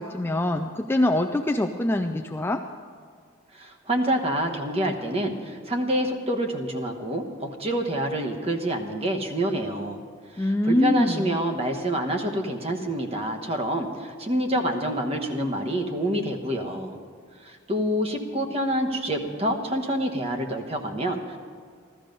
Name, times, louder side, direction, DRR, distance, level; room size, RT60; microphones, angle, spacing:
voice 1, 0.0-2.6 10.4-11.3, left 1 dB, 10° left, 4 dB, 0.3 m, -24 dB
voice 2, 3.5-10.0 10.3-17.0 17.4-21.4, right 1 dB, 30° right, 3 dB, 1.1 m, -27 dB
14.5 x 13.5 x 5.3 m, 2.1 s
head